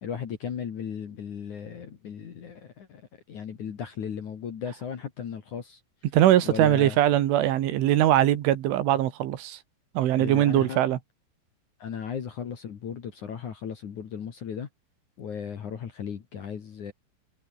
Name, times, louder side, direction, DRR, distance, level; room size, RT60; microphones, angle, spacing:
voice 1, 0.0-3.0 3.3-5.8 6.4-7.0 10.2-10.8 11.8-14.7 15.2-16.9, left 7 dB, 50° left, 2.8 m, -36 dB
voice 2, 6.1-9.6 10.0-11.0, right 12 dB, 75° right, 4.1 m, -21 dB
omnidirectional pair, 5.8 m